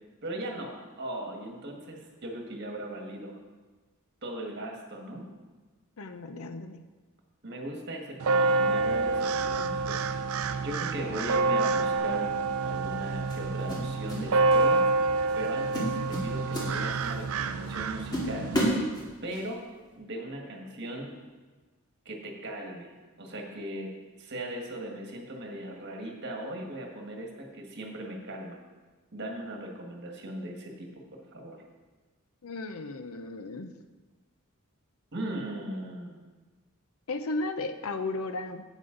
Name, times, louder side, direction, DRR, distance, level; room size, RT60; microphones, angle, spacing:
voice 1, 0.2-3.4 4.2-5.3 7.4-10.0 10.6-12.3 12.6-14.8 15.4-16.0 16.2-18.5 19.2-19.6 20.0-21.1 22.1-22.9 23.2-23.9 24.2-28.6 29.1-30.9 31.3-31.6 35.1-36.2, right 1 dB, 50° right, 1 dB, 1.6 m, -38 dB
voice 2, 6.0-6.8 32.4-33.7 37.1-38.6, left 2 dB, 80° left, 8 dB, 0.7 m, -35 dB
sound 1, 8.2-18.7, right 3 dB, 80° right, 0.5 m, -27 dB
sound 2, 12.0-12.2 13.3-14.2 14.5-14.8 15.3-15.4 15.7-17.2 17.7-17.8 18.1-19.4, equal, 20° left, 2.2 m, -31 dB
11.0 x 8.3 x 3.9 m, 1.3 s
head